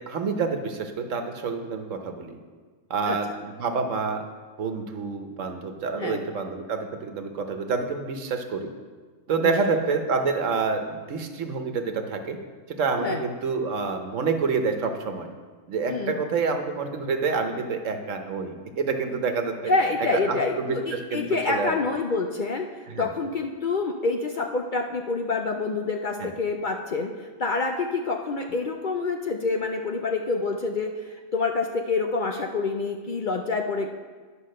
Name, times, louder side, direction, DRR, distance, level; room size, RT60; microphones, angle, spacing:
voice 1, 0.0-2.4 2.9-4.2 4.6-8.7 9.3-12.4 12.7-15.3 15.7-19.7 20.0-21.7 22.9-23.1 26.2-26.3, right 4 dB, 75° right, 5 dB, 1.3 m, -28 dB
voice 2, 19.7-22.7 23.0-33.9, left 3 dB, 55° left, 3 dB, 0.6 m, -27 dB
10.5 x 5.1 x 6.5 m, 1.5 s
omnidirectional pair, 1.3 m